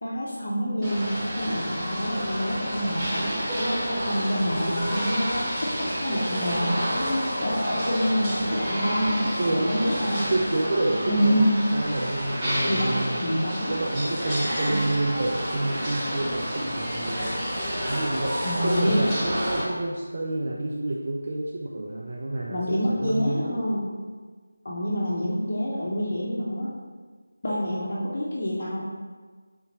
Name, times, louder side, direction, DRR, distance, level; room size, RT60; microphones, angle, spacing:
voice 1, 0.0-10.3 11.1-11.5 12.6-13.7 14.7-14.8 18.4-19.0 22.5-23.9 24.6-26.7 27.4-28.8, equal, 50° left, -8 dB, 0.7 m, -27 dB
sound 1, 0.8-19.6, equal, 15° right, 1.3 m, -29 dB
voice 2, 9.4-9.7 10.3-11.4 11.7-13.2 13.7-17.3 17.9-23.6, right 2 dB, 45° right, -3 dB, 0.4 m, -29 dB
3.6 x 2.8 x 4.2 m, 1.5 s
figure-of-eight pair, 165°, 0 cm